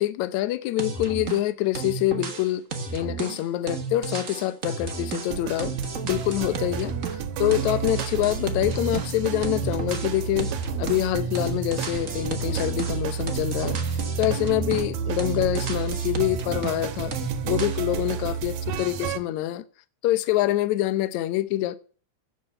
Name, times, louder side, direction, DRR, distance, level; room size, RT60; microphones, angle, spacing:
voice 1, 0.0-2.6 2.9-5.7 6.0-10.5 10.8-13.8 14.2-17.1 17.4-19.6 20.0-21.8, left 15 dB, 75° left, 2.0 m, -26 dB
sound 1, 0.8-1.5 1.7-7.3 7.5-9.1 9.4-11.1 11.3-14.9 15.2-16.8 17.1-17.8, right 5 dB, 50° right, 0.9 m, -33 dB
sound 2, 5.3-19.2, right 7 dB, 75° right, 2.2 m, -30 dB
10.0 x 7.9 x 6.6 m
omnidirectional pair, 3.5 m